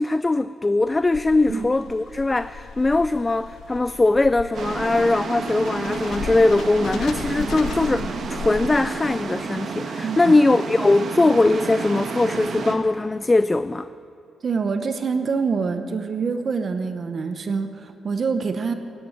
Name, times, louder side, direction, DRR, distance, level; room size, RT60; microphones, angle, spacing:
voice 1, 0.0-13.9, left 2 dB, 20° left, 0.3 m, -20 dB
sound 1, 0.8-9.1, left 7 dB, 75° left, 0.5 m, -37 dB
sound 2, 4.5-12.7, right 5 dB, 65° right, 1.4 m, -30 dB
voice 2, 14.4-18.7, right 5 dB, 50° right, 0.9 m, -25 dB
16.5 x 11.0 x 7.9 m
cardioid pair, 100°, 0 cm